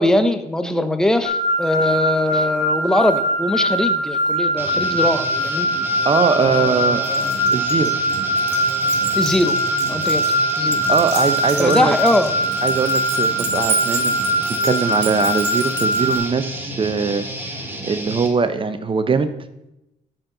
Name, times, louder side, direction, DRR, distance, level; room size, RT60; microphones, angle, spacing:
voice 1, 0.0-5.7 6.4-7.3 9.1-9.6 9.9-10.8 11.6-12.3, left 1 dB, 5° left, 9 dB, 0.7 m, -21 dB
sound 1, 1.2-16.2, equal, 45° left, 1.7 m, -21 dB
Guitar, 4.6-18.3, right 1 dB, 10° right, 1.6 m, -31 dB
voice 2, 6.0-7.0 7.5-7.9 10.9-11.9 12.6-17.2 17.8-19.3, right 5 dB, 30° right, 11 dB, 0.8 m, -21 dB
Keys jangling, 7.0-16.2, right 9 dB, 90° right, 1.3 m, -31 dB
12.5 x 4.5 x 3.9 m, 0.89 s
cardioid pair, 80°, 17 cm